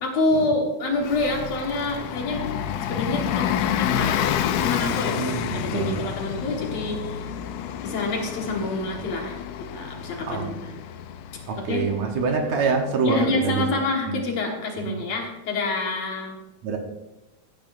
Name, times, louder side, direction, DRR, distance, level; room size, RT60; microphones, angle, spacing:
voice 1, 0.0-2.4 2.9-7.3 7.8-10.7 11.6-11.8 13.0-16.4, left 2 dB, 60° left, 1 dB, 2.5 m, -27 dB
Bus, 0.9-13.2, left 9 dB, 85° left, 1.5 m, -29 dB
voice 2, 5.2-5.9 10.3-10.5 11.5-13.6 14.1-14.2 14.8-15.0 16.6-16.8, right 5 dB, 65° right, 3 dB, 2.1 m, -25 dB
15.0 x 10.5 x 2.5 m, 0.98 s
omnidirectional pair, 3.6 m